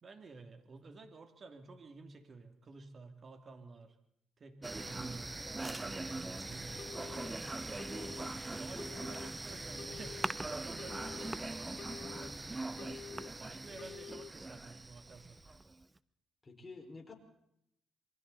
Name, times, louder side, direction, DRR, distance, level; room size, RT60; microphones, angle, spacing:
voice 1, 0.0-4.0 4.4-7.4 8.5-13.0 13.3-15.4, right 3 dB, 40° right, 7 dB, 2.7 m, -52 dB
sound 1, 4.6-15.8, right 2 dB, 15° right, 0.8 m, -41 dB
Telephone, 6.8-7.3 7.8-8.3 8.8-9.3 9.8-10.3 10.8-11.3 11.8-12.3 12.8-13.3 13.8-14.3, left 7 dB, 60° left, 1.1 m, -49 dB
voice 2, 16.4-17.1, left 3 dB, 30° left, 2 dB, 5.1 m, -50 dB
27.5 x 22.5 x 4.1 m, 0.75 s
cardioid pair, 90°, 0 cm